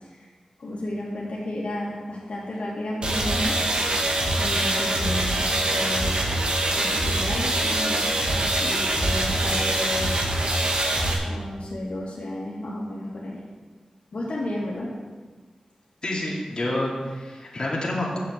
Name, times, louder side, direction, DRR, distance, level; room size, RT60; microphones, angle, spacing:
voice 1, 0.6-3.7 4.4-6.3 6.7-10.3 11.2-13.5 14.1-15.0, left 1 dB, 80° left, -5 dB, 2.3 m, -32 dB
sound 1, 3.0-11.1, right 1 dB, 55° right, 1.7 m, -24 dB
voice 2, 16.0-18.2, left 1 dB, 45° left, -4 dB, 2.5 m, -28 dB
7.6 x 7.5 x 7.7 m, 1.4 s
wide cardioid pair, 95°, 2 cm